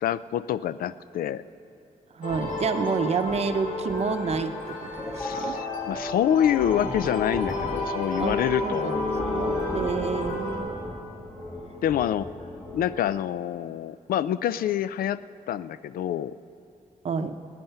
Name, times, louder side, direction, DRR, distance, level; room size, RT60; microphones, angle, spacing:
voice 1, 0.0-1.4 5.2-9.0 11.8-12.3 12.7-15.2 15.5-16.4, left 10 dB, 85° left, 15 dB, 0.4 m, -26 dB
voice 2, 2.1-5.6 8.2-10.7 17.0-17.3, right 5 dB, 45° right, 8 dB, 0.7 m, -29 dB
sound 1, 2.2-10.6, left 2 dB, 70° left, 4.1 m, -32 dB
sound 2, 2.3-13.1, left 2 dB, 15° left, 2.1 m, -36 dB
19.5 x 9.3 x 5.6 m, 2.5 s
wide cardioid pair, 150°, 15 cm